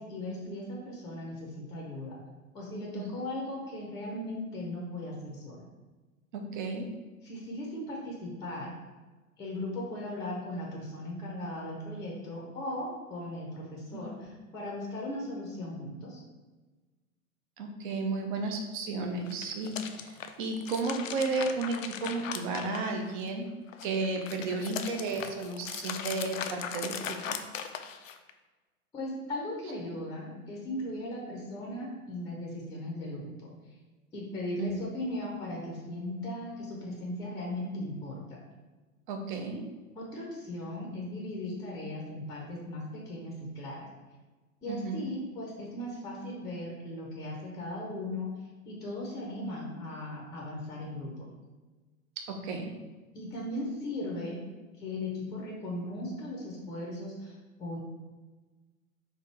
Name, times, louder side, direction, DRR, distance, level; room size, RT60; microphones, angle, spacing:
voice 1, 0.0-2.1 2.5-5.6 7.2-8.8 9.4-16.2 28.9-33.5 34.1-38.2 39.9-43.9 44.6-48.3 48.7-51.3 53.1-54.4 54.8-57.8, left 1 dB, 10° left, -3 dB, 0.7 m, -38 dB
voice 2, 6.3-6.9 13.9-14.0 17.6-23.5 23.8-27.4 34.6-34.7 39.1-39.6 44.7-45.0 52.2-52.7, right 3 dB, 35° right, 4 dB, 0.6 m, -33 dB
sound 1, 19.2-23.3 23.7-28.3, left 8 dB, 60° left, 0.5 m, -39 dB
4.3 x 2.6 x 4.5 m, 1.3 s
figure-of-eight pair, 100°, 43 cm